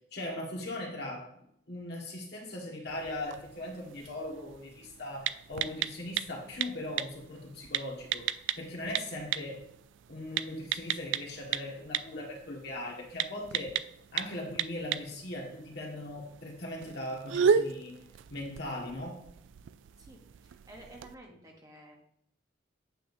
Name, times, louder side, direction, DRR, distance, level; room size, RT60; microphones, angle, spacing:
voice 1, 0.1-1.2 1.7-8.3 8.6-9.6 10.1-13.8 14.1-18.0 18.3-19.2, left 1 dB, 60° left, -1 dB, 1.8 m, -39 dB
sound 1, 2.9-21.1, right 7 dB, 80° right, 0.3 m, -35 dB
voice 2, 20.0-22.0, right 1 dB, 20° right, 0 dB, 1.1 m, -52 dB
8.9 x 6.9 x 2.7 m, 0.74 s
head